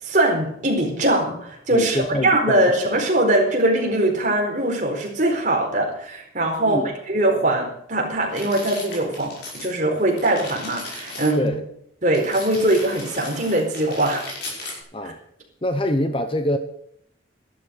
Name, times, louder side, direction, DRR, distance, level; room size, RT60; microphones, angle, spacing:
voice 1, 0.0-11.5 12.0-14.2 15.0-15.1, right 1 dB, 40° right, 0 dB, 4.3 m, -21 dB
voice 2, 1.7-2.6 2.9-3.0 6.6-6.9 11.3-11.6 14.9-15.2 15.6-16.6, left 1 dB, 30° left, 8 dB, 1.0 m, -25 dB
sound 1, 8.3-9.7 10.0-11.3 12.1-14.8, left 2 dB, 55° left, 5.9 m, -36 dB
13.0 x 12.0 x 6.4 m, 0.71 s
head